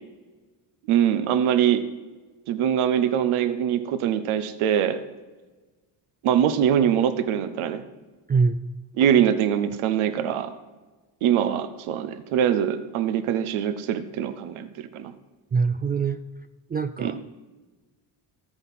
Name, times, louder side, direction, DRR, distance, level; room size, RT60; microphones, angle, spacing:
voice 1, 0.9-1.9 2.5-5.0 6.2-7.8 9.0-10.5 11.2-15.1 17.0-17.1, right 9 dB, 75° right, 11 dB, 1.1 m, -23 dB
voice 2, 8.3-8.6 15.5-16.2 16.7-17.2, right 5 dB, 20° right, 10 dB, 0.3 m, -23 dB
14.0 x 7.7 x 5.9 m, 1.2 s
supercardioid pair, 80°, 49 cm